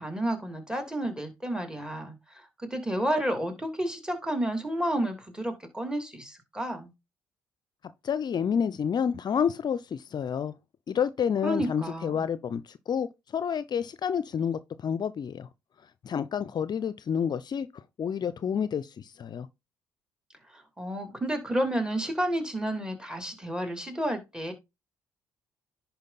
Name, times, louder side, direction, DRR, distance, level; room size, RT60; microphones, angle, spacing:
voice 1, 0.0-6.9 11.4-12.3 20.5-24.5, right 1 dB, 10° right, 2.8 m, -31 dB
voice 2, 8.0-10.5 10.9-13.1 13.3-15.5 16.0-19.5, left 7 dB, 50° left, 0.6 m, -29 dB
10.5 x 4.5 x 4.1 m
hypercardioid pair, 55°, 9 cm